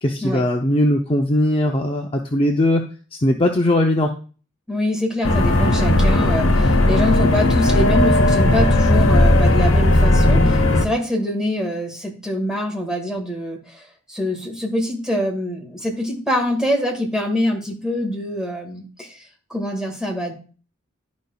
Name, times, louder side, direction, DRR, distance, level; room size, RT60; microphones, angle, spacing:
voice 1, 0.0-2.8 3.2-4.1, left 1 dB, 25° left, 1 dB, 0.6 m, -19 dB
voice 2, 4.7-19.2 19.5-20.3, left 1 dB, 5° right, 0 dB, 1.7 m, -24 dB
sound 1, 5.2-10.9, left 1 dB, 70° left, 1.0 m, -16 dB
11.5 x 5.2 x 2.3 m, 0.38 s
head